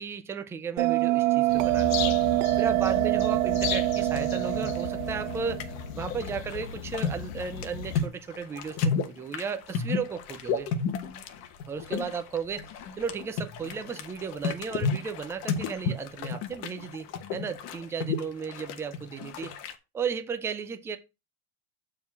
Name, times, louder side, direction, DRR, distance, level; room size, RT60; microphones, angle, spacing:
voice 1, 0.0-2.1 2.5-5.7 5.9-10.7 11.7-12.7 13.0-19.5 19.9-21.0, right 6 dB, 5° right, 0.4 m, -35 dB
Bell, 0.8-5.8, right 19 dB, 65° right, 0.5 m, -25 dB
sound 1, 1.5-8.1, left 9 dB, 80° left, 1.0 m, -36 dB
sound 2, 4.0-19.7, left 5 dB, 40° left, 1.1 m, -33 dB
7.0 x 3.8 x 6.0 m
supercardioid pair, 150°, 40 cm